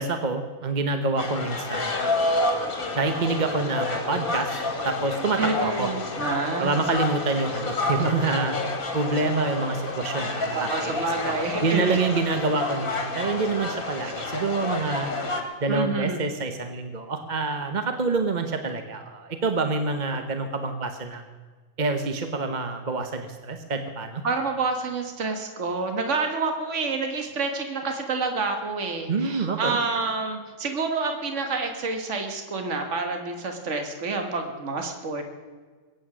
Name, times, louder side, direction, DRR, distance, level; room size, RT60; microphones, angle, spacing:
voice 1, 0.0-2.4 2.9-4.6 4.8-5.9 6.6-8.6 8.9-15.1 15.6-21.2 21.8-24.2 29.1-29.8, right 3 dB, 35° right, 7 dB, 1.0 m, -27 dB
sound 1, 1.2-15.4, left 2 dB, 70° left, 2.5 m, -29 dB
voice 2, 5.4-6.8 10.5-12.1 15.7-16.2 24.2-35.2, right 4 dB, 55° right, 5 dB, 1.9 m, -28 dB
22.5 x 9.1 x 6.2 m, 1.5 s
omnidirectional pair, 1.5 m